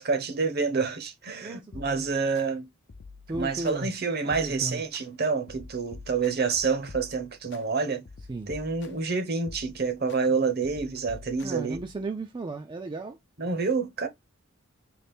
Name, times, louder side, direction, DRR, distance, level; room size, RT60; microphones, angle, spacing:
voice 1, 0.0-2.7 3.3-8.1 8.5-11.8 13.4-14.1, right 4 dB, 55° right, 0.8 m, -28 dB
voice 2, 1.4-2.1 3.3-3.9 4.2-4.8 8.3-8.5 11.4-13.2, right 3 dB, 25° right, 0.4 m, -35 dB
sound 1, 1.7-2.5 2.9-4.0 4.3-5.0 5.5-7.6 8.1-9.1 9.5-10.2 10.6-12.1, left 3 dB, 60° left, 0.6 m, -47 dB
4.0 x 2.4 x 3.4 m
head